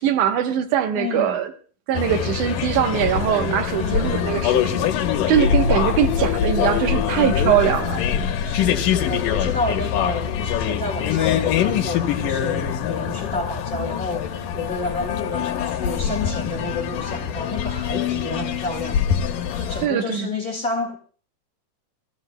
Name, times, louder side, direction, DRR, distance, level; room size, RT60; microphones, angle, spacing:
voice 1, 0.0-1.5 1.9-4.9 5.3-8.0 19.8-20.3, right 10 dB, 65° right, 2.4 m, -22 dB
voice 2, 0.9-1.4 3.7-4.1 8.4-19.1 19.5-21.0, left 3 dB, 35° left, 1.6 m, -30 dB
sound 1, 1.9-19.9, left 8 dB, 70° left, 2.6 m, -23 dB
28.0 x 16.5 x 2.2 m
omnidirectional pair, 4.1 m